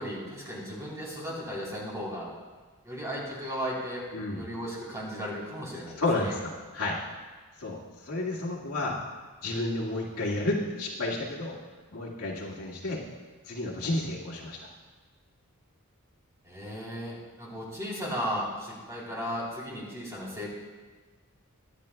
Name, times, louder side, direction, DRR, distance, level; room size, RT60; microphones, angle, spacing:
voice 1, 0.0-2.3 2.8-4.0 4.3-6.3 16.4-20.5, equal, 15° right, -5 dB, 3.5 m, -35 dB
voice 2, 4.1-4.4 6.0-7.0 7.6-9.0 9.4-11.6 11.9-13.0 13.4-14.6, left 2 dB, 85° left, -5 dB, 2.0 m, -31 dB
23.0 x 10.0 x 2.3 m, 1.4 s
head